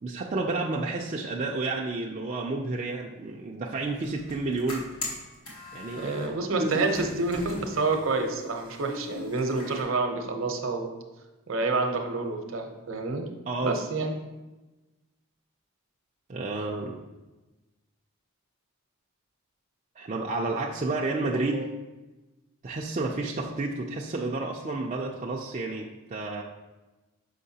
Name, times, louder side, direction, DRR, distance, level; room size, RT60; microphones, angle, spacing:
voice 1, 0.0-4.8 5.7-6.1 6.6-6.9 13.5-13.8 16.3-17.0 20.0-21.7 22.6-26.4, right 3 dB, 35° right, -1 dB, 0.4 m, -30 dB
sound 1, 3.8-6.3 6.6-9.8, left 1 dB, 75° left, 1.9 m, -41 dB
voice 2, 5.9-10.9 11.5-13.3 13.6-14.1, right 3 dB, 65° right, 4 dB, 0.7 m, -28 dB
6.5 x 5.3 x 2.7 m, 1.1 s
head